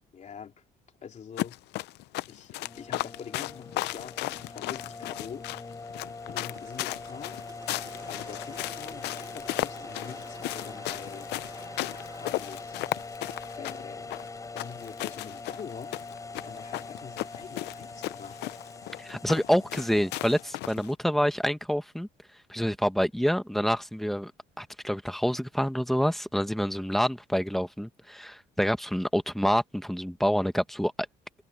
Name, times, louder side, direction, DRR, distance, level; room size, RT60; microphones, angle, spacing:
voice 1, 0.1-0.5 1.0-1.6 2.3-5.5 6.3-7.4 8.1-11.3 11.9-12.8 13.5-14.1 14.5-16.0 16.4-18.5, left 7 dB, 45° left, 3.3 m, -44 dB
sound 1, 1.4-20.9, left 18 dB, 80° left, 0.6 m, -36 dB
sound 2, 2.6-20.5, left 3 dB, 20° left, 7.0 m, -43 dB
sound 3, 6.5-14.8, right 4 dB, 20° right, 2.8 m, -52 dB
voice 2, 19.0-22.1 22.5-24.3 24.6-30.9, equal, ahead, 1.5 m, -27 dB
cardioid pair, 110°, 17 cm